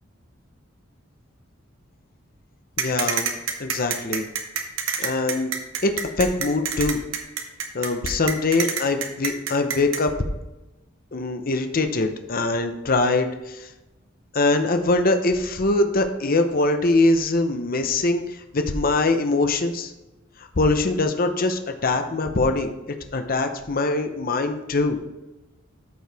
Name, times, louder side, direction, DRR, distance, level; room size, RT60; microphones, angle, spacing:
voice 1, 2.8-4.3 5.0-5.5 5.8-7.0 7.7-10.1 11.1-13.7 14.3-19.9 20.4-25.0, left 2 dB, 45° left, 6 dB, 0.8 m, -23 dB
sound 1, 2.8-10.0, right 7 dB, 90° right, 1.1 m, -26 dB
14.0 x 4.7 x 3.4 m, 1.0 s
head